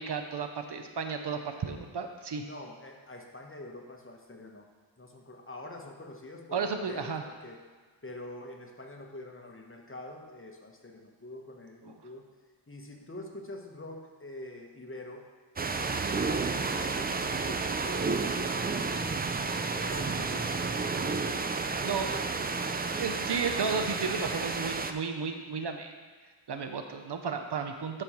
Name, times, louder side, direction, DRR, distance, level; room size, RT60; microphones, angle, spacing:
voice 1, 0.0-2.4 6.5-7.2 11.8-11.9 21.8-22.2 23.0-25.9 26.5-28.0, right 5 dB, 60° right, 5 dB, 0.7 m, -33 dB
voice 2, 2.4-4.7 5.0-7.6 8.0-12.2 12.7-15.2 16.0-18.1 19.7-23.0, left 1 dB, 25° left, 1 dB, 1.0 m, -46 dB
sound 1, 15.6-24.9, right 4 dB, 20° right, 0.3 m, -31 dB
10.5 x 5.0 x 3.1 m, 1.4 s
wide cardioid pair, 60°, 46 cm